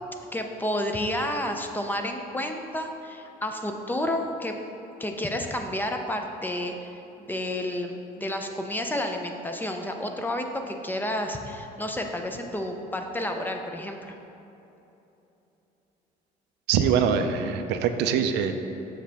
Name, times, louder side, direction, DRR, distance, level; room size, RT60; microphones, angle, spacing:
voice 1, 0.3-4.5 5.0-6.9 7.2-14.1, left 1 dB, 10° left, 4 dB, 0.5 m, -30 dB
voice 2, 16.7-18.5, right 7 dB, 90° right, 7 dB, 0.5 m, -23 dB
7.5 x 5.6 x 3.4 m, 3.0 s
cardioid pair, 110°, 17 cm